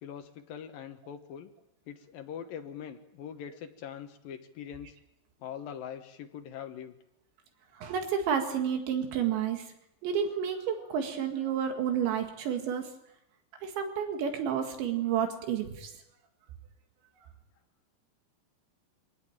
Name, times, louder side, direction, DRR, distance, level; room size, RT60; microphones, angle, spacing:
voice 1, 0.0-1.5 1.9-4.9 5.4-6.9, left 8 dB, 65° left, 7 dB, 2.5 m, -42 dB
voice 2, 7.8-9.7 10.0-12.9 13.6-15.9, right 8 dB, 75° right, 5 dB, 4.1 m, -30 dB
26.0 x 17.5 x 8.9 m, 0.79 s
omnidirectional pair, 5.3 m